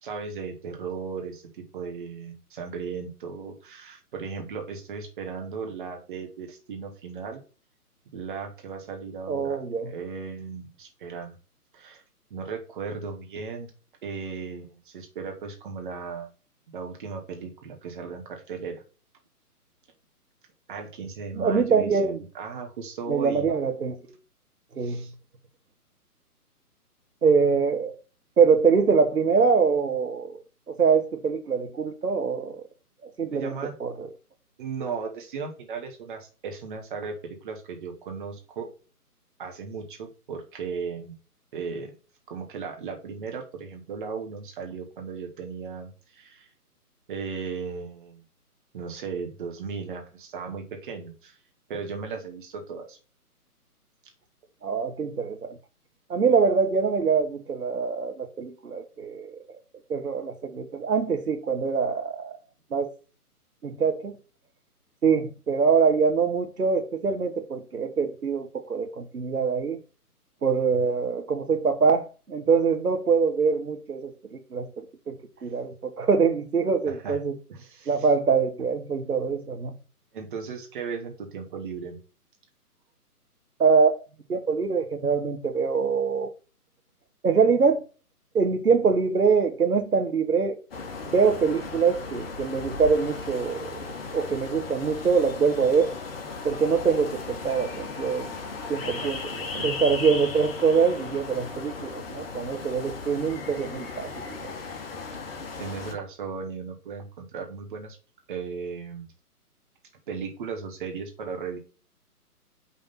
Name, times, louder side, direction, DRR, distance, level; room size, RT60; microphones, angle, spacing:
voice 1, 0.0-1.4 1.7-7.4 8.1-9.6 9.8-11.4 11.7-12.0 12.3-13.7 14.0-16.3 16.7-18.8 20.7-23.5 24.8-25.1 33.3-34.1 34.6-38.7 39.4-41.1 41.5-41.9 42.3-46.5 47.1-48.2 48.7-51.4 51.7-53.0 70.7-70.9 76.9-77.2 77.5-77.9 80.1-82.0 98.8-99.1 99.5-99.8 105.6-108.0 108.3-109.1 110.1-111.6, right 5 dB, 35° right, 1.5 m, -36 dB
voice 2, 9.3-9.9 21.3-22.2 23.1-24.0 24.8-25.0 27.2-27.9 28.4-30.4 30.8-32.6 33.0-33.5 33.8-34.1 54.6-55.6 56.1-59.4 59.9-62.3 62.7-62.9 63.6-64.1 65.0-69.8 70.4-77.4 77.9-79.7 83.6-83.9 84.3-86.3 87.2-87.8 88.3-90.6 91.1-95.9 96.4-98.3 98.7-104.1, right 5 dB, 75° right, 1.4 m, -24 dB
sound 1, 90.7-105.9, left 4 dB, 40° left, 1.2 m, -36 dB
5.6 x 3.5 x 5.6 m
figure-of-eight pair, 140°, 46 cm